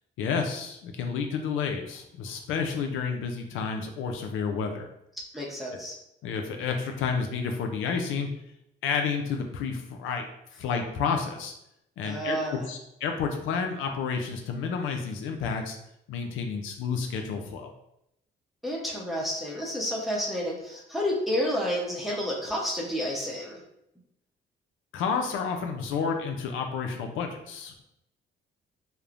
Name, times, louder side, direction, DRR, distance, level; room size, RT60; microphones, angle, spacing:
voice 1, 0.2-4.9 6.2-8.3 8.8-10.2 10.6-11.5 12.0-15.8 16.1-17.7 24.9-27.8, left 5 dB, 85° left, 4 dB, 0.4 m, -30 dB
voice 2, 5.3-6.0 12.0-12.7 18.6-23.6, equal, ahead, -2 dB, 0.7 m, -30 dB
3.0 x 2.0 x 2.4 m, 0.81 s
cardioid pair, 90°, 20 cm